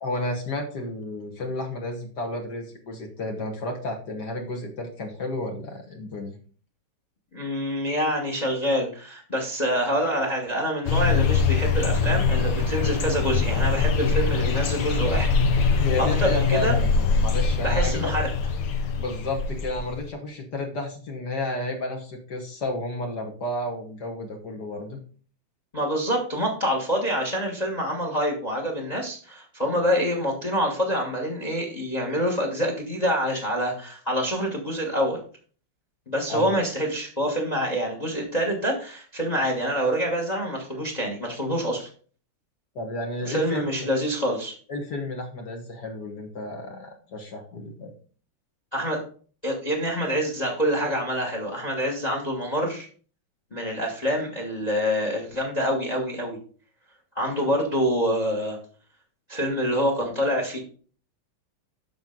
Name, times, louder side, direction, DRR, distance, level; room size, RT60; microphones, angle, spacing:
voice 1, 0.0-6.4 15.8-18.1 19.0-25.0 36.3-36.5 42.8-43.9 44.7-47.9, left 2 dB, 55° left, 2 dB, 1.7 m, -31 dB
voice 2, 7.3-16.7 17.6-18.2 25.7-35.2 36.1-41.9 43.2-44.5 48.7-49.0 49.4-52.9 53.5-56.4 57.1-58.6 59.3-60.6, equal, 20° left, 1 dB, 1.2 m, -26 dB
sound 1, 10.9-20.0, left 5 dB, 75° left, 1.9 m, -23 dB
7.6 x 5.9 x 3.8 m, 0.42 s
omnidirectional pair, 2.4 m